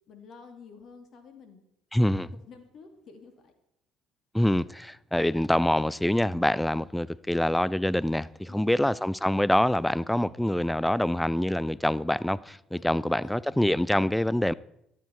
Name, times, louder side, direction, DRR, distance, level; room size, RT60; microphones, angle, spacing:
voice 1, 0.1-1.6 2.5-3.5 8.5-8.9 12.8-13.4, left 5 dB, 50° left, 2.3 m, -49 dB
voice 2, 1.9-2.3 4.3-14.5, left 1 dB, 5° left, 0.5 m, -25 dB
13.5 x 12.0 x 4.6 m
figure-of-eight pair, 50°, 0 cm